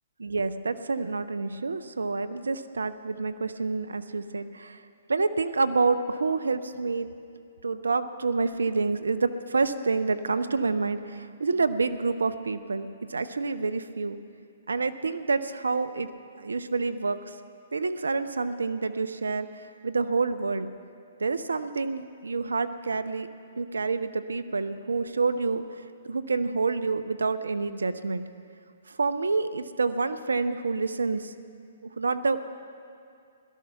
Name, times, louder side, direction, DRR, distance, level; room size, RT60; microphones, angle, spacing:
voice 1, 0.2-4.8 5.1-7.1 7.6-14.2 14.7-17.3 17.7-20.7 21.2-23.3 23.6-28.2 28.9-31.3 31.8-32.5, right 4 dB, 80° right, 11 dB, 0.7 m, -28 dB
17.5 x 13.0 x 5.8 m, 2.3 s
figure-of-eight pair, 125°, 0 cm